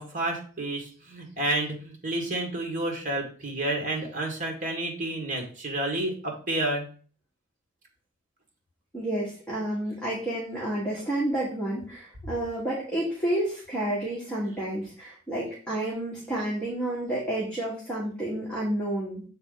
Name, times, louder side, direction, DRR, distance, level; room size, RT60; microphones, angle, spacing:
voice 1, 0.0-6.9, right 1 dB, 40° right, 2 dB, 1.6 m, -30 dB
voice 2, 8.9-19.2, right 1 dB, 5° left, -7 dB, 1.6 m, -30 dB
6.9 x 3.9 x 3.9 m, 0.41 s
head